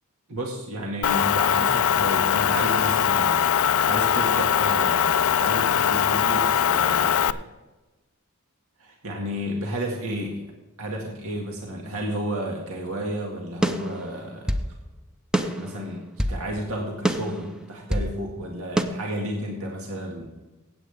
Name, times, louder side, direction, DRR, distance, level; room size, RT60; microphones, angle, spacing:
voice 1, 0.3-3.4 3.9-7.4 8.8-10.4 10.8-14.5 15.3-16.0 16.3-20.3, right 1 dB, 70° right, 0 dB, 2.1 m, -32 dB
Motor vehicle (road) / Engine, 1.0-7.3, left 9 dB, 70° left, 0.4 m, -21 dB
sound 1, 13.6-14.7 15.3-16.4 17.0-18.1 18.8-18.9, right 1 dB, 5° right, 0.7 m, -26 dB
16.0 x 8.7 x 3.5 m, 1.1 s
head